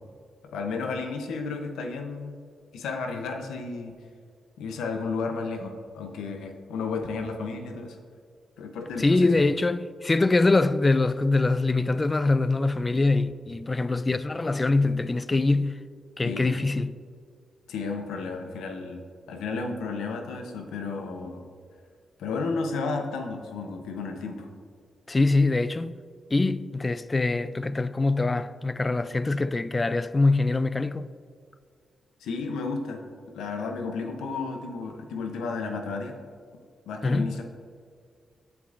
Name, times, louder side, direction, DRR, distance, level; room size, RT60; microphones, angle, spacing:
voice 1, 0.5-2.4 2.7-3.9 4.6-8.0 8.6-9.3 16.2-16.5 17.7-21.4 22.2-24.5 32.2-33.0 33.3-36.2 36.9-37.4, left 4 dB, 85° left, 0.7 m, -33 dB
voice 2, 9.0-15.8 16.2-16.9 25.1-26.0 26.3-31.1 37.0-37.4, left 3 dB, 30° left, 0.3 m, -23 dB
8.3 x 7.1 x 2.5 m
supercardioid pair, 55°, 0 cm